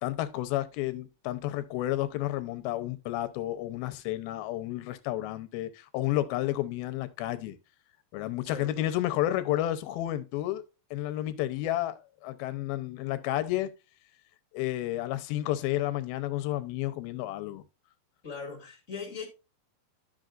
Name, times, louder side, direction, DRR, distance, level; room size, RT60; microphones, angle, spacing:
voice 1, 0.0-7.6 8.1-10.6 10.9-13.7 14.5-17.6, left 14 dB, 90° left, 2.7 m, -31 dB
voice 2, 18.2-19.3, left 5 dB, 25° left, 2.1 m, -39 dB
12.0 x 6.3 x 2.5 m
omnidirectional pair, 4.2 m